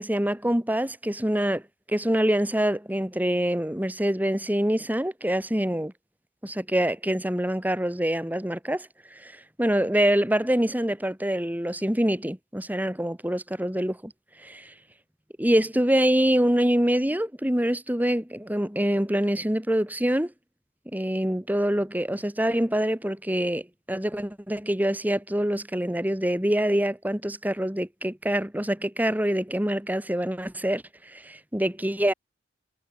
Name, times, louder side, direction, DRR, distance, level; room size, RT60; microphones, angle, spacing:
voice 1, 0.0-1.6 1.9-5.9 6.4-14.1 14.4-14.7 15.4-20.3 20.9-32.1, equal, 10° right, 2.4 m, -25 dB
head